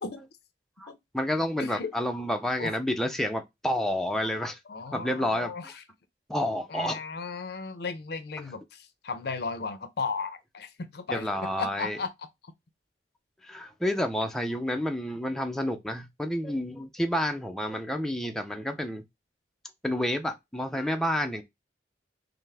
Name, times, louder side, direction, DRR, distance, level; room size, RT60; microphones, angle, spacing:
voice 1, 0.8-4.6 4.9-5.5 6.3-7.0 11.1-12.0 13.4-19.0 19.8-21.4, equal, ahead, 0.4 m, -29 dB
voice 2, 1.6-1.9 2.6-2.8 4.7-5.7 6.7-11.3 11.6-12.1 12.4-12.5, left 4 dB, 60° left, 0.5 m, -35 dB
5.5 x 2.0 x 3.3 m
head